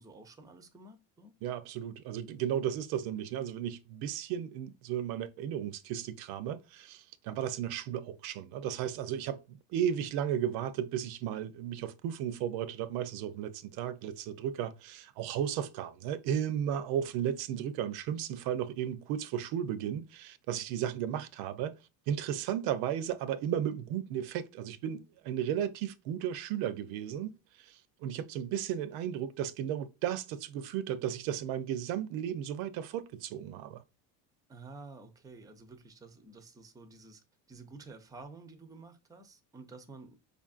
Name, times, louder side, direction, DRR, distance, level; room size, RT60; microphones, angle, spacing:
voice 1, 0.0-1.3 21.0-21.3 34.5-40.2, right 3 dB, 10° right, 0.5 m, -51 dB
voice 2, 1.4-9.4 9.7-21.7 22.1-33.8, right 10 dB, 70° right, 0.6 m, -34 dB
5.0 x 2.5 x 2.3 m
cardioid pair, 125°, 38 cm